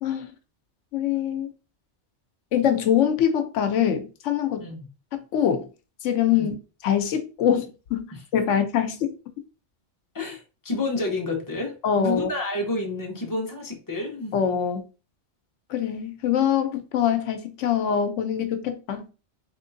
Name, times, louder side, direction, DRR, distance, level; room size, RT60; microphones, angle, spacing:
voice 1, 0.0-0.3 0.9-1.5 2.5-4.7 5.1-5.7 6.0-6.6 6.8-9.1 11.8-12.3 14.3-14.8 15.7-19.0, left 9 dB, 90° left, 0.9 m, -24 dB
voice 2, 10.1-14.4, left 2 dB, 20° left, 0.8 m, -30 dB
3.5 x 3.1 x 2.6 m
omnidirectional pair, 1.2 m